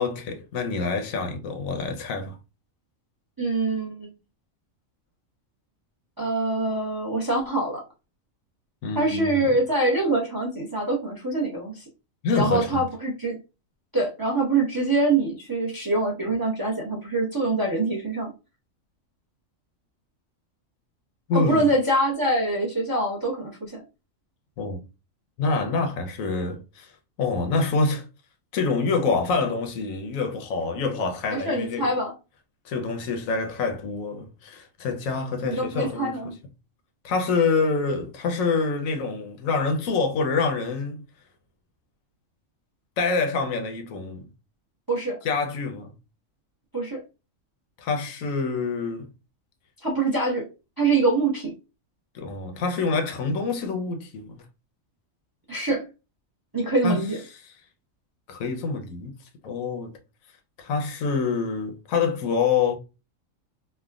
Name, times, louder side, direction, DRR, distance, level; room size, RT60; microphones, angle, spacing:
voice 1, 0.0-2.4 8.8-9.5 12.2-12.8 21.3-21.7 24.6-24.8 25.4-26.9 27.2-28.0 28.5-31.9 32.6-36.2 37.0-41.0 43.0-44.2 45.2-45.9 47.8-49.1 52.1-54.4 56.8-57.0 57.4-57.5 58.3-59.2 59.4-59.9 60.6-62.8, left 4 dB, 85° left, 1.1 m, -26 dB
voice 2, 3.4-4.1 6.2-7.8 8.9-11.8 12.3-13.3 13.9-18.3 21.3-23.8 31.3-32.1 35.4-36.4 44.9-45.2 46.7-47.0 49.8-50.4 50.8-51.5 55.5-55.8 56.5-57.2, right 2 dB, 25° right, 0.4 m, -24 dB
3.3 x 2.1 x 2.3 m
omnidirectional pair, 1.4 m